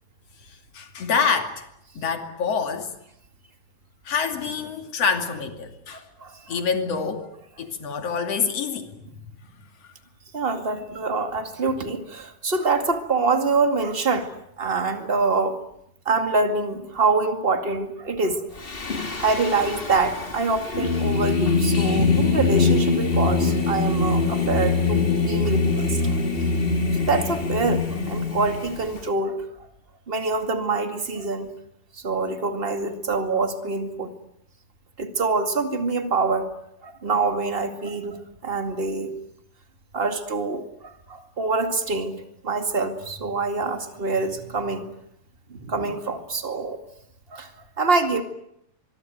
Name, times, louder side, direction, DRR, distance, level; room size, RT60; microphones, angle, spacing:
voice 1, 0.5-1.6 2.0-2.9 4.1-6.0 6.5-9.0, left 5 dB, 55° left, 7 dB, 3.5 m, -26 dB
voice 2, 5.9-6.6 10.3-14.3 14.6-15.6 16.1-18.4 19.2-26.2 26.9-29.4 30.1-31.5 31.9-34.1 35.0-36.5 36.8-39.1 39.9-42.1 42.4-44.9 45.5-46.8 47.3-47.5 47.8-48.2, right 3 dB, 20° right, 7 dB, 2.0 m, -25 dB
Singing, 18.6-29.0, left 4 dB, 20° left, 1.9 m, -23 dB
25.0 x 23.5 x 9.2 m, 0.77 s
omnidirectional pair, 3.4 m